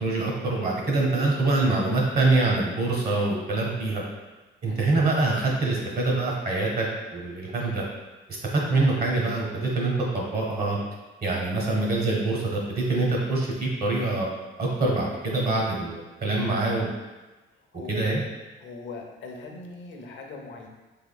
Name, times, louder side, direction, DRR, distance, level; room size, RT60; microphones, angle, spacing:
voice 1, 0.0-4.0 4.6-7.8 8.5-10.8 11.2-14.3 14.6-16.9 17.9-18.2, right 2 dB, 50° right, -2 dB, 1.0 m, -25 dB
voice 2, 18.6-20.7, left 3 dB, 70° left, 1 dB, 0.6 m, -40 dB
3.5 x 3.2 x 2.3 m, 1.1 s
cardioid pair, 90°, 20 cm